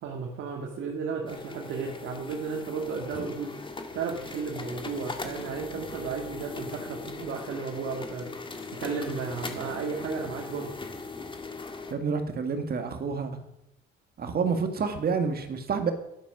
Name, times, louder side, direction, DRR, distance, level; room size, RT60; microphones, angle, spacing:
voice 1, 0.0-3.5 3.9-8.3 8.7-10.7, right 5 dB, 80° right, 0 dB, 1.8 m, -34 dB
sound 1, 1.3-11.9, left 3 dB, 25° left, 1.7 m, -39 dB
voice 2, 11.9-13.4 14.2-15.9, right 5 dB, 50° right, 6 dB, 1.7 m, -28 dB
11.5 x 10.5 x 6.0 m, 0.83 s
cardioid pair, 90°, 20 cm